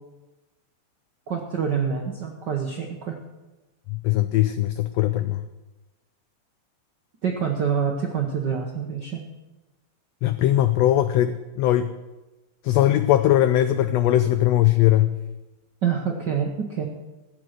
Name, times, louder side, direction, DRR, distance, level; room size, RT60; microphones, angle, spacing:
voice 1, 1.3-3.2 7.2-9.2 15.8-16.9, right 7 dB, 70° right, 1 dB, 1.0 m, -26 dB
voice 2, 3.9-5.4 10.2-11.9 12.6-15.2, left 13 dB, 90° left, 11 dB, 1.4 m, -20 dB
15.0 x 7.7 x 6.5 m, 1.1 s
omnidirectional pair, 3.5 m